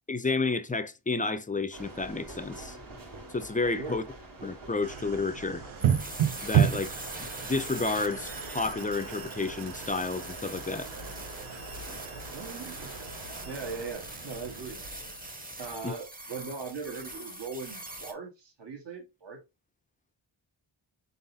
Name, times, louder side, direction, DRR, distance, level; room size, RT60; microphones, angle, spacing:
voice 1, 0.1-2.8 3.3-4.0 4.4-5.6 6.4-6.9 7.2-10.9 15.8-15.9, left 3 dB, 20° left, 0.4 m, -31 dB
sound 1, 1.7-13.9, right 2 dB, 45° right, 1.1 m, -48 dB
voice 2, 3.8-4.1 12.3-13.1 13.4-15.1 15.6-19.4, right 4 dB, 60° right, 1.4 m, -40 dB
sound 2, 4.8-15.9, right 9 dB, 80° right, 0.9 m, -33 dB
sound 3, 5.8-18.1, right 1 dB, 20° right, 0.8 m, -43 dB
4.0 x 3.9 x 2.6 m
wide cardioid pair, 75°, 48 cm